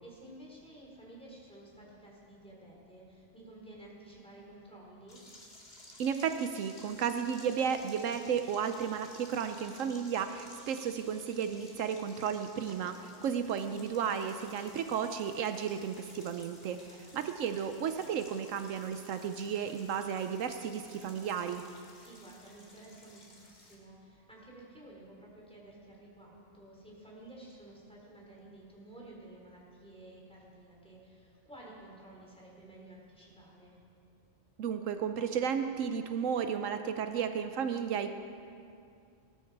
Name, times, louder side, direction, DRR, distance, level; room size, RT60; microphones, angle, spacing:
voice 1, 0.0-5.2 13.1-13.7 16.8-17.1 21.9-33.8, right 1 dB, 5° left, -4 dB, 3.4 m, -53 dB
sound 1, 5.1-23.8, left 1 dB, 50° left, 2.4 m, -55 dB
voice 2, 6.0-16.9 17.1-21.6 34.6-38.1, right 7 dB, 80° right, 8 dB, 1.0 m, -33 dB
18.5 x 13.0 x 4.7 m, 2.4 s
omnidirectional pair, 1.3 m